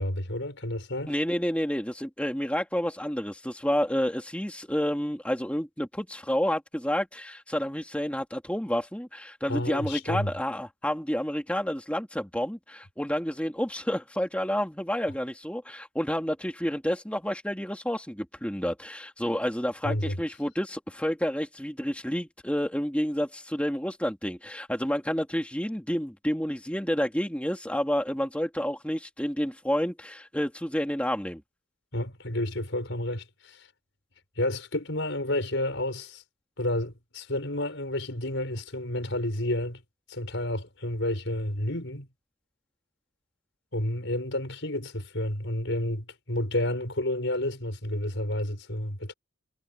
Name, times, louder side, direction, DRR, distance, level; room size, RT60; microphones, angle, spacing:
voice 1, 0.0-1.1 9.5-10.3 19.8-20.2 31.9-33.7 34.4-36.2 36.6-39.8 40.1-42.1 43.7-49.1, left 1 dB, 65° left, 5.9 m, -30 dB
voice 2, 1.1-31.4, equal, 5° left, 2.8 m, -29 dB
head